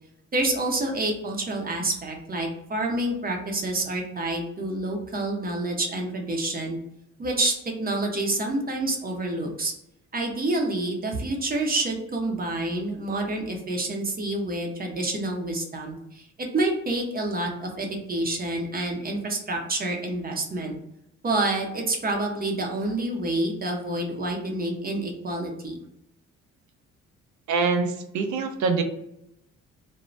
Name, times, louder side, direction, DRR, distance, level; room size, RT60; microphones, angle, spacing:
voice 1, 0.3-6.8 7.2-7.5 7.8-9.7 10.1-20.7 21.2-25.8, right 2 dB, 30° right, 2 dB, 0.7 m, -28 dB
voice 2, 27.5-28.8, right 4 dB, 75° right, 6 dB, 0.6 m, -24 dB
2.5 x 2.1 x 3.0 m, 0.77 s
cardioid pair, 90°, 30 cm